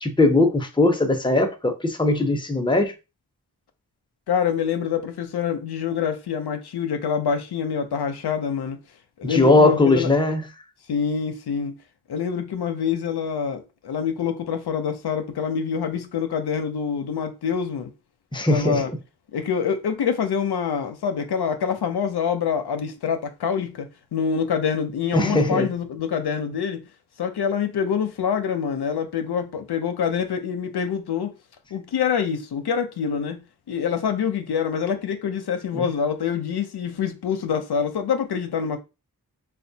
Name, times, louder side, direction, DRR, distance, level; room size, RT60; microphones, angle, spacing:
voice 1, 0.0-2.9 9.2-10.4 18.3-19.0 25.1-25.7 35.7-35.9, left 2 dB, 10° left, 0.7 m, -19 dB
voice 2, 4.3-8.8 9.2-10.1 10.9-11.8 12.1-17.9 18.5-18.9 19.3-26.9 27.2-31.3 31.7-33.4 33.7-38.8, left 7 dB, 80° left, 0.6 m, -26 dB
4.2 x 2.3 x 2.7 m
cardioid pair, 50°, 38 cm